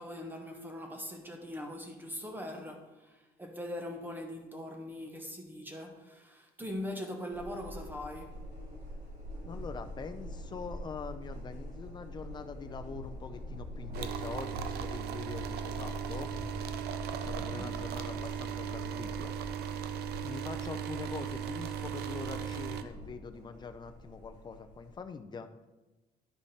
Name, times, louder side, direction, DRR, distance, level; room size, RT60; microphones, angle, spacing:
voice 1, 0.0-8.4 17.4-17.8, left 1 dB, 10° right, 1.1 m, -41 dB
sound 1, 7.3-24.9, equal, 50° right, 2.8 m, -44 dB
voice 2, 9.4-16.3 17.1-19.3 20.2-25.5, left 5 dB, 25° left, 0.6 m, -44 dB
sound 2, 13.9-22.8, right 8 dB, 70° right, 0.6 m, -37 dB
10.5 x 4.9 x 4.2 m
cardioid pair, 110°, 17 cm